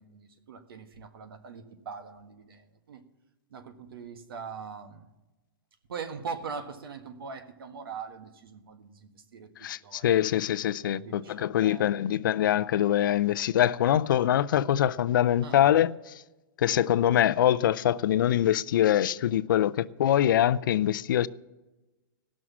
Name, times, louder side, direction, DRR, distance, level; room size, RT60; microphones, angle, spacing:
voice 1, 0.0-2.6 2.9-3.0 3.5-5.1 5.9-10.2 10.9-12.2 15.4-15.6, right 5 dB, 75° right, 1.6 m, -42 dB
voice 2, 9.6-15.9 16.6-21.3, left 11 dB, 60° left, 0.5 m, -24 dB
17.0 x 6.2 x 7.2 m
hypercardioid pair, 170°, 12 cm